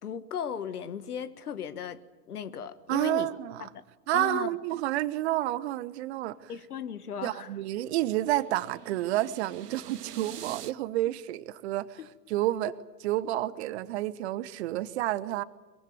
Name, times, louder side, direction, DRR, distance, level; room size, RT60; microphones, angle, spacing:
voice 1, 0.0-3.3 3.6-3.8 4.1-4.5 6.5-7.5 12.0-12.1, left 8 dB, 65° left, 1.6 m, -36 dB
voice 2, 2.9-3.7 4.1-6.5 7.2-12.7 13.0-15.4, right 15 dB, 40° right, 1.1 m, -30 dB
sound 1, 6.4-10.7, right 10 dB, 70° right, 0.9 m, -46 dB
23.0 x 22.5 x 9.3 m
figure-of-eight pair, 100°, 49 cm